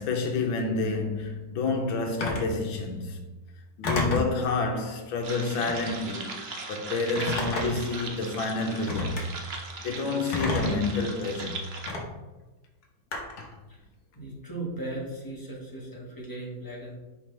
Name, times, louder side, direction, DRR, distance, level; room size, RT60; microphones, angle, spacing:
voice 1, 0.0-3.2 3.8-6.4 6.7-9.2 9.8-11.6, left 3 dB, 80° left, 1.6 m, -29 dB
Telephone, 2.2-2.5 3.8-4.3 5.6-6.0 7.2-7.9 8.9-9.2 10.3-10.9 11.9-12.0 13.1-13.5, left 2 dB, 55° left, 1.5 m, -29 dB
sound 1, 5.2-11.9, right 3 dB, 65° right, 0.6 m, -38 dB
voice 2, 14.1-17.0, right 2 dB, 10° left, 1.3 m, -37 dB
5.9 x 5.2 x 3.3 m
omnidirectional pair, 2.1 m